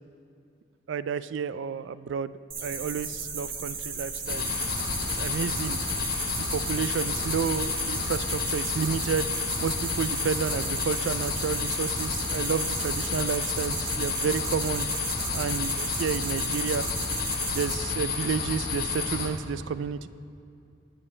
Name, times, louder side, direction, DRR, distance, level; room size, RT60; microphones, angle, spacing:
voice 1, 0.9-2.3 2.6-4.5 5.1-5.8 6.4-14.9 15.3-16.9 17.5-20.1, right 6 dB, 80° right, 16 dB, 0.3 m, -31 dB
sound 1, 2.5-17.7, right 5 dB, 50° right, 1.1 m, -36 dB
sound 2, 4.2-19.3, left 4 dB, 55° left, 1.3 m, -30 dB
19.5 x 7.6 x 3.2 m, 2.4 s
head